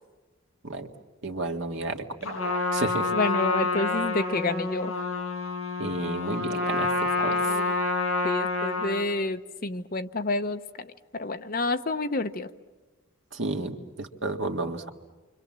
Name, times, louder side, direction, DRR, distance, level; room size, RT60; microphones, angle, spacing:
voice 1, 1.2-2.0 2.7-3.1 5.8-7.5 13.3-14.9, right 2 dB, 60° right, 4 dB, 1.9 m, -32 dB
Trumpet, 2.2-9.1, left 3 dB, 75° left, 6.4 m, -28 dB
voice 2, 3.1-4.9 7.3-7.6 8.2-10.9 11.1-12.5, left 2 dB, 40° left, 9 dB, 0.9 m, -29 dB
28.5 x 25.0 x 7.5 m, 1.2 s
head